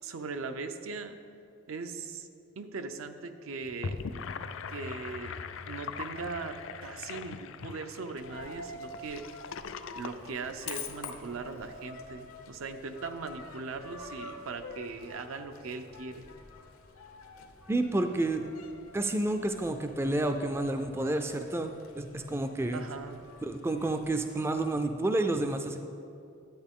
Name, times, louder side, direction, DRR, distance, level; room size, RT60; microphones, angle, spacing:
voice 1, 0.0-1.2 1.7-2.3 2.6-4.0 4.7-5.4 5.7-9.3 9.9-16.3 22.7-23.2, right 4 dB, 80° right, 8 dB, 0.6 m, -39 dB
Gurgling / Sink (filling or washing), 3.6-11.2, left 5 dB, 65° left, 0.4 m, -41 dB
Coin (dropping), 8.2-24.8, left 3 dB, 90° left, 0.8 m, -47 dB
voice 2, 17.7-18.4 18.9-22.8 23.4-25.8, right 2 dB, 10° right, 6 dB, 0.3 m, -30 dB
10.5 x 8.9 x 3.6 m, 2.6 s
head